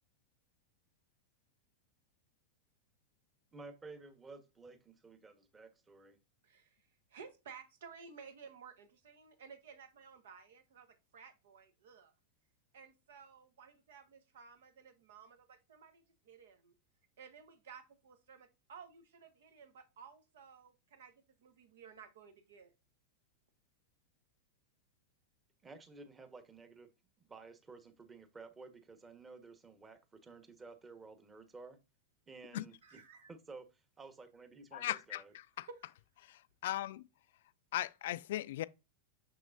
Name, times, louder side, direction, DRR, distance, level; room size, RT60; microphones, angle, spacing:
voice 1, 3.5-6.2 25.6-26.9 27.2-31.8 32.3-33.0 33.3-35.3, right 3 dB, 20° right, 1.3 m, -53 dB
voice 2, 6.4-12.1 12.7-16.7 17.2-21.1 21.4-22.7 32.8-33.3 35.6-35.9, right 6 dB, 70° right, 1.4 m, -55 dB
voice 3, 34.7-35.2 35.6-35.7 36.3-37.0 37.7-38.6, left 14 dB, 65° left, 0.4 m, -38 dB
6.4 x 6.3 x 2.6 m
hypercardioid pair, 95°, 0 cm